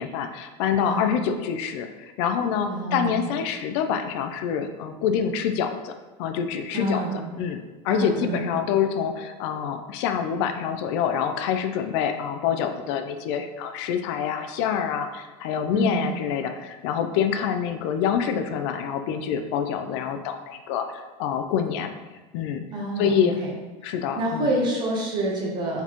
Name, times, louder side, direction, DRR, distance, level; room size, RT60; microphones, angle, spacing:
voice 1, 0.0-5.9 6.2-7.0 7.4-20.9 21.2-21.9 22.3-22.6 23.0-23.4 23.8-24.5, left 8 dB, 70° left, 7 dB, 0.4 m, -26 dB
voice 2, 2.7-3.1 6.7-7.2 7.9-8.5 15.7-16.1 22.7-23.5 24.2-25.8, right 1 dB, 30° right, -2 dB, 1.0 m, -27 dB
4.0 x 4.0 x 3.0 m, 1.2 s
cardioid pair, 160°, 15 cm